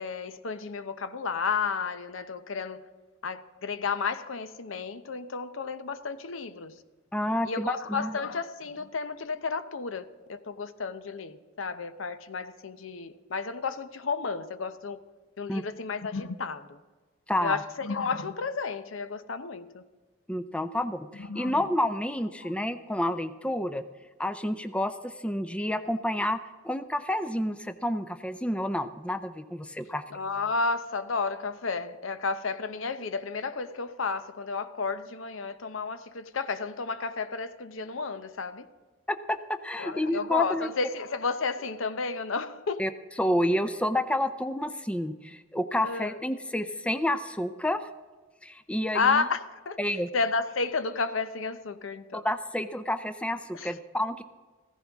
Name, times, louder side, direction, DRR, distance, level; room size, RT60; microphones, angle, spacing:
voice 1, 0.0-2.8 3.2-6.7 7.4-15.0 15.4-16.8 17.4-19.8 21.2-21.6 22.4-22.5 30.1-38.7 39.8-42.8 45.8-46.2 48.9-52.2 53.5-53.7, left 4 dB, 75° left, 0.7 m, -32 dB
voice 2, 7.1-8.2 15.5-15.6 17.3-17.6 20.3-23.8 24.2-30.0 39.1-40.7 42.8-42.9 43.2-47.9 48.4-49.2 49.8-50.1 52.1-54.2, left 1 dB, 5° left, 0.4 m, -29 dB
15.5 x 14.5 x 3.5 m
head